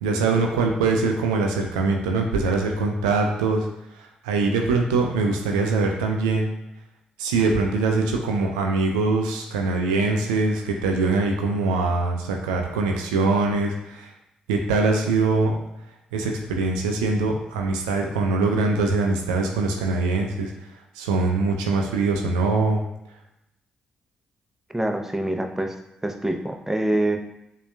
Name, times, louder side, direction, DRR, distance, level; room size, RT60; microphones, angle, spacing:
voice 1, 0.0-3.7 3.9-6.5 7.2-14.1 14.5-15.5 16.1-20.5 20.9-22.8, right 3 dB, 90° right, 2 dB, 0.4 m, -23 dB
voice 2, 24.7-25.8 26.0-27.2, right 1 dB, 10° right, 4 dB, 0.5 m, -25 dB
6.6 x 2.3 x 2.2 m, 0.84 s
hypercardioid pair, 40°, 3 cm